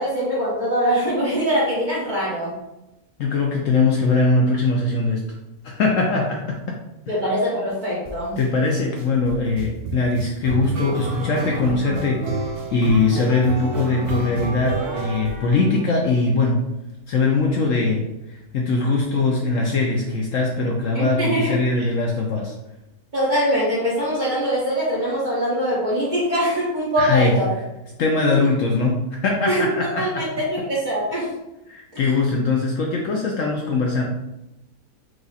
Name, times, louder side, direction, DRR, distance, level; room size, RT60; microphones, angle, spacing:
voice 1, 0.0-2.5 7.1-8.4 20.9-21.9 23.1-27.5 28.2-28.4 29.5-31.3 31.9-32.1, equal, 30° right, -6 dB, 1.4 m, -23 dB
voice 2, 3.2-5.2 5.6-6.6 8.4-12.4 12.7-16.6 17.1-18.0 18.5-22.5 27.0-27.3 28.0-30.2 31.7-34.0, left 3 dB, 65° left, 0 dB, 0.9 m, -21 dB
sound 1, 8.1-8.4 9.0-16.1, right 2 dB, 75° right, 1.2 m, -30 dB
4.8 x 2.4 x 4.0 m, 0.92 s
omnidirectional pair, 1.7 m